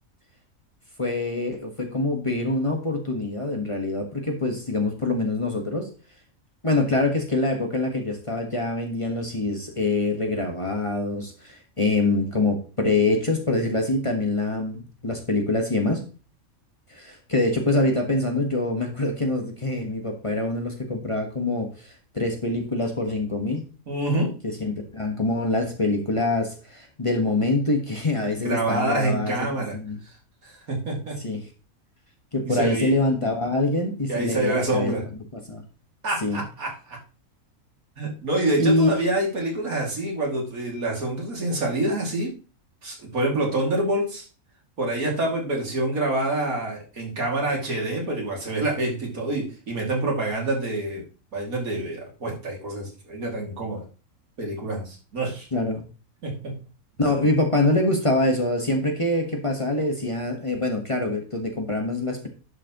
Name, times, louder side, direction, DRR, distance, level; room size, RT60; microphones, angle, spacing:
voice 1, 1.0-5.9 6.6-16.0 16.9-23.6 24.4-29.5 29.7-30.0 31.2-31.5 32.3-34.9 35.3-35.6 36.2-36.4 38.6-39.1 55.5-55.8 57.0-62.3, left 2 dB, 25° left, 2 dB, 1.4 m, -25 dB
voice 2, 23.9-24.4 28.4-29.8 30.4-31.2 32.5-32.9 34.1-35.0 36.0-37.0 38.0-42.3 42.8-44.3 44.8-51.0 51.3-53.8 54.4-55.5 56.2-56.6, right 2 dB, 90° right, -1 dB, 3.0 m, -27 dB
11.5 x 6.0 x 3.0 m, 0.34 s
omnidirectional pair, 1.5 m